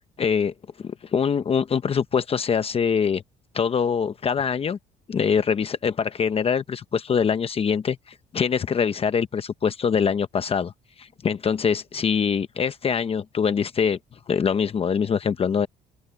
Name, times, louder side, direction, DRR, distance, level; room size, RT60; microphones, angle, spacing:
voice 1, 0.2-3.2 3.5-4.8 5.1-10.7 11.0-14.0 14.3-15.7, left 6 dB, 35° left, 0.9 m, -24 dB
open air
cardioid pair, 110°, 17 cm